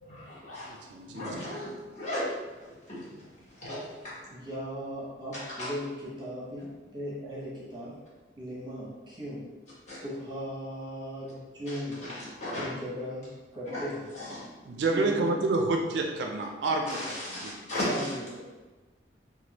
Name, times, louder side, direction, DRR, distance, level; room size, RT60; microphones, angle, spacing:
voice 1, 0.0-0.7 1.1-2.3 2.6-3.3 3.6-4.2 5.6-5.7 9.9-10.0 11.7-11.8 12.0-12.7 13.7-13.8 14.1-14.5 16.9-18.1, left 1 dB, 40° left, -9 dB, 1.1 m, -36 dB
voice 2, 0.9-1.6 14.6-17.5, right 2 dB, 75° right, 2 dB, 0.4 m, -29 dB
voice 3, 4.3-8.0 8.4-9.5 10.0-12.1 12.5-14.1 14.9-15.4 17.8-18.4, equal, 25° right, -7 dB, 0.8 m, -38 dB
3.2 x 2.2 x 2.8 m, 1.3 s
head